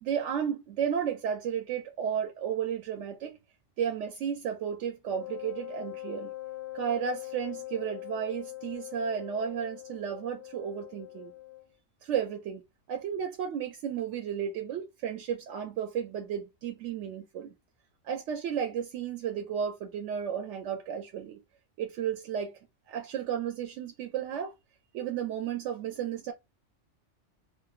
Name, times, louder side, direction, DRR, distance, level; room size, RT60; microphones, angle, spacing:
voice 1, 0.0-3.4 3.8-6.3 6.7-11.3 12.0-12.6 12.9-17.5 18.0-21.4 21.8-22.6 22.9-24.5 24.9-26.3, right 8 dB, 75° right, 0.9 m, -33 dB
Wind instrument woodwind instrument, 5.0-11.7, left 16 dB, 60° left, 1.5 m, -42 dB
3.1 x 2.2 x 2.3 m
omnidirectional pair, 1.3 m